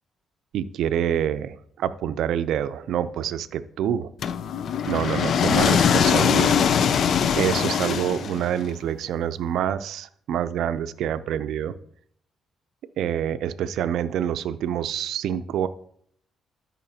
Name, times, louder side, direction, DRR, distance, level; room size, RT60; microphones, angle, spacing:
voice 1, 0.5-4.1 4.9-6.6 7.4-11.7 13.0-15.7, right 9 dB, 80° right, 13 dB, 0.5 m, -26 dB
sound 1, 4.2-8.6, left 7 dB, 60° left, 0.4 m, -21 dB
13.0 x 5.6 x 2.8 m, 0.65 s
cardioid pair, 90°, 0 cm